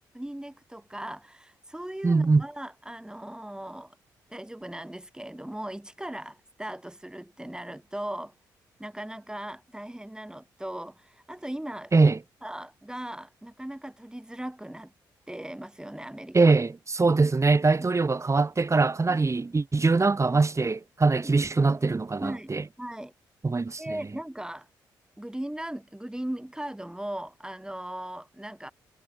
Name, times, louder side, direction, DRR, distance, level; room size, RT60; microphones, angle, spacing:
voice 1, 0.2-4.0 4.3-8.3 8.8-12.1 12.4-14.9 15.3-16.5 19.1-19.2 21.7-21.8 22.2-22.5 22.8-23.1 23.8-24.7 25.2-28.7, right 1 dB, 10° right, 7.5 m, -38 dB
voice 2, 2.0-2.4 11.9-12.2 16.3-22.7 23.4-24.0, right 3 dB, 30° right, 3.8 m, -22 dB
hypercardioid pair, 45°, 9 cm